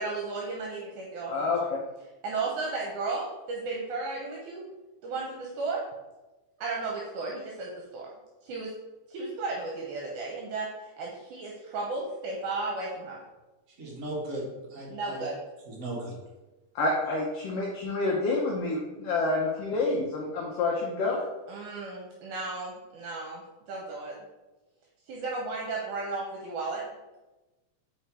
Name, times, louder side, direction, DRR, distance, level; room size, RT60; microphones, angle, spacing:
voice 1, 0.0-1.5 2.2-4.6 5.0-5.8 6.6-8.1 8.4-8.7 9.1-13.2 14.9-15.4 21.5-24.1 25.1-26.9, right 3 dB, 75° right, -2 dB, 2.1 m, -34 dB
voice 2, 1.3-1.6 16.7-21.2, left 3 dB, 75° left, -3 dB, 1.4 m, -28 dB
voice 3, 13.8-14.4 14.7-15.2 15.7-16.1, right 1 dB, 40° right, -4 dB, 1.2 m, -36 dB
5.0 x 4.4 x 4.6 m, 1.1 s
omnidirectional pair, 3.7 m